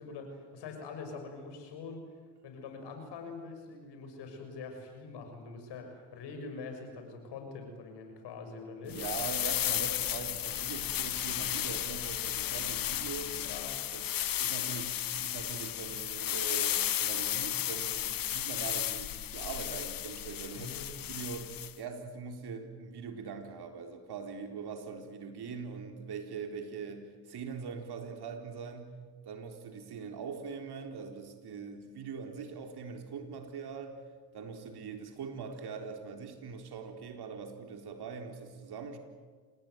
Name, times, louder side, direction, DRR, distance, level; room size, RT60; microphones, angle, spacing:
voice 1, 0.0-2.0 2.4-9.0 13.4-13.8 20.5-20.9, left 4 dB, 80° left, 5 dB, 6.4 m, -44 dB
voice 2, 8.8-13.5 13.9-14.0 14.4-20.7 21.1-34.0 34.3-39.0, right 5 dB, 70° right, 5 dB, 4.2 m, -42 dB
sound 1, 8.9-21.7, left 12 dB, 55° left, 0.9 m, -34 dB
27.0 x 20.5 x 9.4 m, 1.5 s
supercardioid pair, 55°, 41 cm